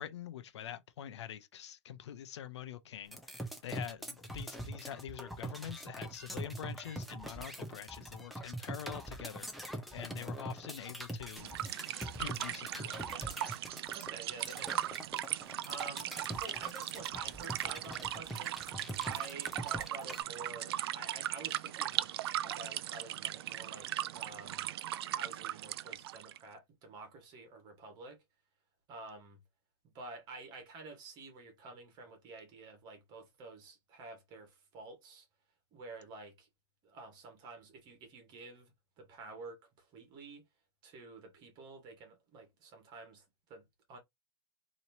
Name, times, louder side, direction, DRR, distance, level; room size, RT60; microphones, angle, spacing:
voice 1, 0.0-11.6 12.2-13.3, left 10 dB, 75° left, 0.7 m, -45 dB
sound 1, 3.1-20.2, right 1 dB, ahead, 0.7 m, -43 dB
sound 2, 11.4-26.4, right 13 dB, 60° right, 0.4 m, -38 dB
voice 2, 13.9-15.1 15.6-18.6 19.0-22.2 22.4-24.7 25.2-28.2 28.9-29.4 29.8-35.3 35.7-36.5 36.8-40.5 40.8-44.0, right 3 dB, 30° right, 1.8 m, -50 dB
4.1 x 3.1 x 2.8 m
hypercardioid pair, 155°, 15 cm